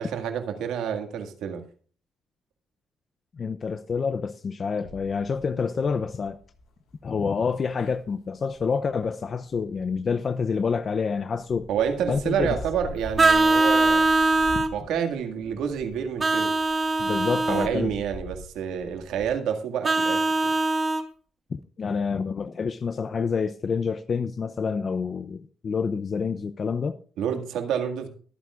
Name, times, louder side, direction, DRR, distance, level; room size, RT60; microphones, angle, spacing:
voice 1, 0.0-1.6 11.7-14.1 14.7-16.5 17.5-20.5 27.2-28.1, right 8 dB, 85° right, 2.0 m, -28 dB
voice 2, 3.4-6.4 7.0-11.7 12.1-12.6 17.0-17.9 21.5-27.0, left 5 dB, 45° left, 0.6 m, -28 dB
sound 1, 4.8-10.8 11.3-19.3, left 1 dB, 90° left, 7.4 m, -43 dB
Vehicle horn car horn honking, 13.2-14.7 16.2-17.7 19.8-21.0, right 2 dB, 30° right, 1.5 m, -21 dB
22.5 x 9.2 x 2.5 m
cardioid pair, 90°, 0 cm